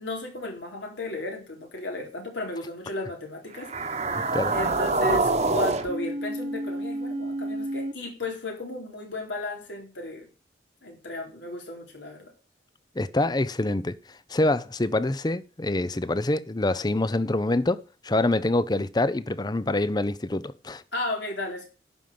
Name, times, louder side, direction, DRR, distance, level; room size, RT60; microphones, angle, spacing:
voice 1, 0.0-10.3 10.8-12.3 20.9-21.7, left 2 dB, 85° left, 4.1 m, -34 dB
sound 1, 3.5-7.9, right 2 dB, 40° right, 1.2 m, -27 dB
voice 2, 13.0-14.0 14.3-20.8, left 2 dB, 20° left, 0.6 m, -25 dB
11.5 x 5.5 x 7.6 m
head